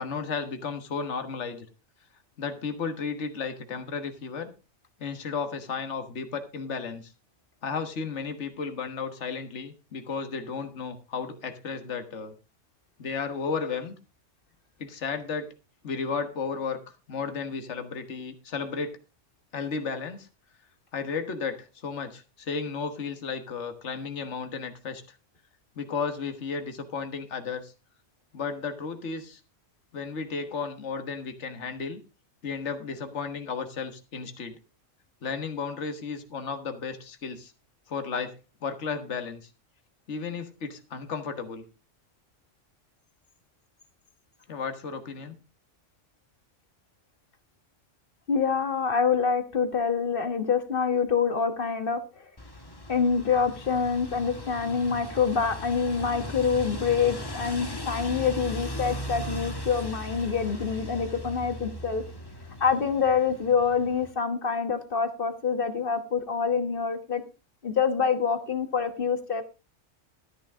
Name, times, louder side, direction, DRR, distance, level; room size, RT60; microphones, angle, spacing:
voice 1, 0.0-1.7 2.4-4.5 5.0-7.1 7.6-12.3 13.0-13.9 14.8-15.5 15.8-16.8 17.1-19.0 19.5-20.3 20.9-25.2 25.7-27.7 28.3-29.4 29.9-32.0 32.4-34.6 35.2-37.5 37.9-38.3 38.6-39.4 40.1-41.6 44.5-45.4, left 5 dB, 65° left, 8 dB, 1.7 m, -33 dB
voice 2, 48.3-52.2 52.9-62.0 62.6-67.2 67.6-69.4, left 6 dB, 45° left, 9 dB, 1.5 m, -26 dB
sound 1, 52.4-64.1, left 1 dB, 20° left, 1.4 m, -38 dB
13.0 x 9.9 x 3.6 m, 0.30 s
omnidirectional pair, 1.3 m